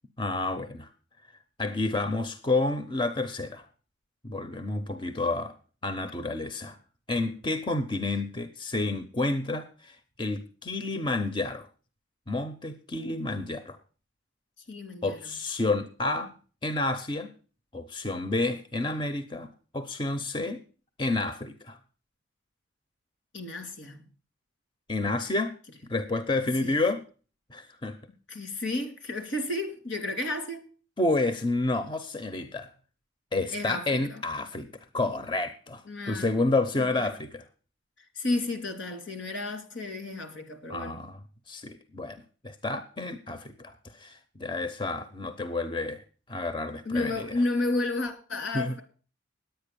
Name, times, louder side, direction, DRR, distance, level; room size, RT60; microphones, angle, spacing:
voice 1, 0.2-0.9 1.6-3.6 4.2-5.5 5.8-6.8 7.1-11.7 12.3-13.8 15.0-16.3 16.6-17.3 17.7-19.5 19.7-20.6 21.0-21.8 24.9-25.5 25.9-27.0 27.5-28.0 31.0-32.7 33.3-34.7 34.9-37.4 40.7-41.2 41.5-46.0 46.3-47.3 48.5-48.7, left 2 dB, 25° left, 9 dB, 0.8 m, -30 dB
voice 2, 14.7-15.3 23.3-24.0 26.6-26.8 28.3-30.7 33.5-34.2 35.9-36.3 36.8-37.1 38.1-41.0 46.8-48.8, left 2 dB, 80° left, 6 dB, 2.9 m, -32 dB
10.5 x 9.0 x 6.9 m, 0.39 s
head